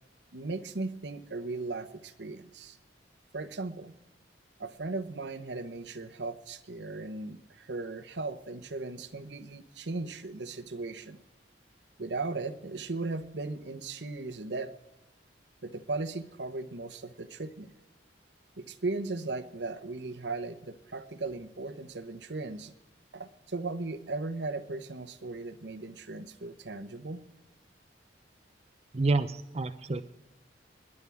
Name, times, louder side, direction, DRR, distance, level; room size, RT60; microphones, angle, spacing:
voice 1, 0.3-2.8 3.3-3.9 4.6-11.2 12.0-14.7 15.6-17.7 18.6-22.7 23.1-27.2, right 3 dB, 70° right, 10 dB, 1.0 m, -37 dB
voice 2, 28.9-30.0, right 3 dB, 35° right, 8 dB, 0.6 m, -28 dB
29.0 x 11.0 x 3.5 m, 0.98 s
head